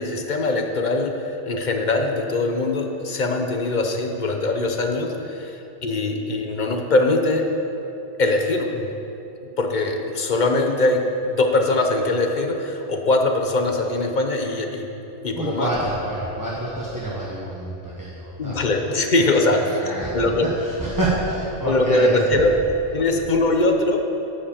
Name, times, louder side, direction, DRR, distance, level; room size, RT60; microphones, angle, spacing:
voice 1, 0.0-7.5 8.2-8.9 9.6-14.9 15.2-15.7 18.4-20.5 21.6-22.6 22.9-24.0, left 2 dB, 45° left, 4 dB, 0.9 m, -22 dB
voice 2, 15.3-18.7 19.3-22.4, right 1 dB, 15° right, -6 dB, 1.2 m, -28 dB
11.5 x 5.5 x 7.2 m, 2.9 s
omnidirectional pair, 1.2 m